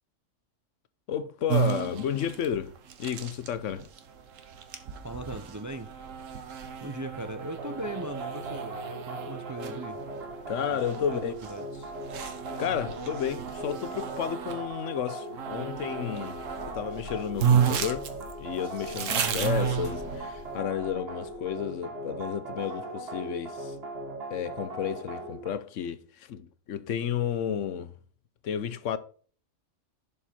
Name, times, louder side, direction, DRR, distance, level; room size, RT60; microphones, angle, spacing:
voice 1, 1.1-2.7 3.0-3.9 10.5-11.3 12.6-16.4 16.7-18.1 18.4-23.8 24.3-27.9 28.4-29.0, left 8 dB, 80° left, 1.1 m, -32 dB
Bee buzzing, 1.5-14.7 15.3-16.8 17.0-17.1 17.4-20.5, right 8 dB, 85° right, 1.4 m, -32 dB
voice 2, 5.0-5.9 6.8-10.1 10.7-10.8 11.1-11.9, right 1 dB, 25° right, 0.4 m, -39 dB
sound 1, 7.6-25.5, right 1 dB, 55° right, 1.7 m, -39 dB
sound 2, 16.3-21.6, left 7 dB, 45° left, 0.4 m, -48 dB
11.0 x 5.3 x 4.3 m
omnidirectional pair, 1.3 m